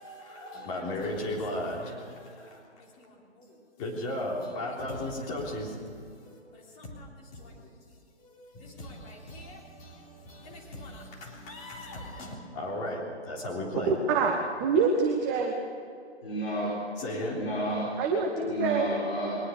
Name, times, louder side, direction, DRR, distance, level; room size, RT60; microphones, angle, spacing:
voice 1, 0.0-7.7 8.1-13.9 17.0-17.5, left 1 dB, 20° left, -2 dB, 3.6 m, -37 dB
voice 2, 13.9-15.5 18.0-18.9, right 4 dB, 15° right, 2 dB, 1.1 m, -26 dB
voice 3, 16.2-16.7 17.0-17.9 18.5-19.3, right 1 dB, 65° left, -6 dB, 6.5 m, -32 dB
22.0 x 20.0 x 6.6 m, 2.5 s
figure-of-eight pair, 145°, 34 cm